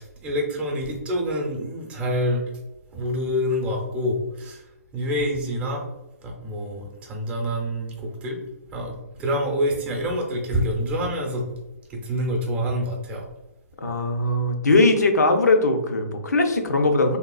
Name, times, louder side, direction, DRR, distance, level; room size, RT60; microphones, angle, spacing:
voice 1, 0.0-2.4 2.9-4.6 4.9-5.9 6.2-8.4 8.7-11.5 11.9-13.3, equal, 15° right, 0 dB, 0.6 m, -27 dB
voice 2, 13.8-17.2, left 2 dB, 85° left, 4 dB, 0.6 m, -20 dB
3.6 x 2.4 x 2.3 m, 1.0 s
hypercardioid pair, 140°, 9 cm